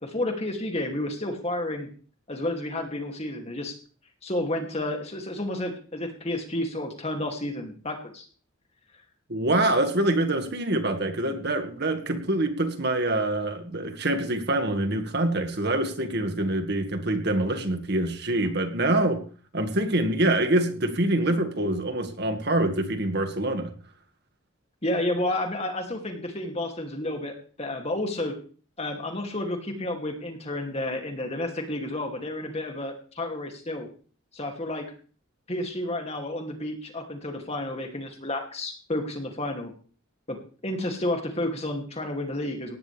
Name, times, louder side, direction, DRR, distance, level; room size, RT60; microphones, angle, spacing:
voice 1, 0.0-1.9 2.3-3.8 4.2-8.2 24.8-28.4 28.8-33.9 34.3-34.9 35.5-39.7 40.3-40.4 40.6-42.8, left 1 dB, 30° left, 3 dB, 2.7 m, -31 dB
voice 2, 9.3-19.2 19.5-23.7, right 1 dB, 50° right, 6 dB, 2.0 m, -25 dB
18.5 x 14.5 x 3.5 m, 0.41 s
head